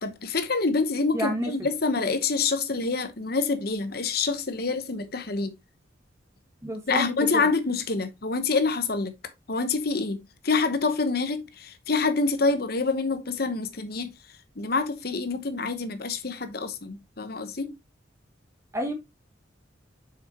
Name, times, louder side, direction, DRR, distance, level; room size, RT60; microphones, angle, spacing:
voice 1, 0.0-5.5 6.9-9.1 9.5-14.1 14.6-17.7, left 4 dB, 55° left, 1.0 m, -27 dB
voice 2, 1.1-1.5 6.6-7.0 18.7-18.9, equal, 15° right, 1.9 m, -28 dB
7.7 x 6.0 x 2.9 m
head